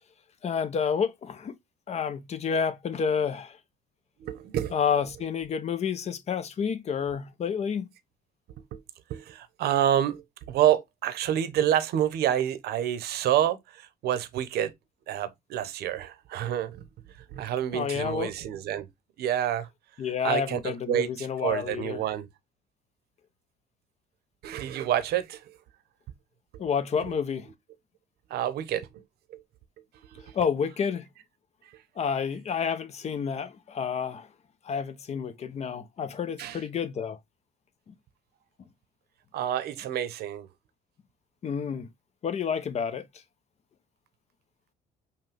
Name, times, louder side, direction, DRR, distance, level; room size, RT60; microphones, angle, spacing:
voice 1, 0.4-1.5 1.9-3.6 4.7-7.9 17.7-18.3 20.0-22.0 26.6-27.5 30.3-31.1 32.0-34.3 34.6-37.2 41.4-41.9 42.2-43.0, left 7 dB, 40° left, 0.7 m, -29 dB
voice 2, 4.2-5.0 8.7-8.8 9.1-14.7 15.1-16.8 17.3-18.9 19.2-19.7 20.2-22.3 24.4-25.6 27.0-27.2 28.3-29.0 29.3-29.4 30.1-30.4 31.7-31.8 36.4-36.6 39.3-40.5, right 11 dB, 70° right, 0.8 m, -28 dB
5.7 x 2.2 x 3.3 m
cardioid pair, 110°, 17 cm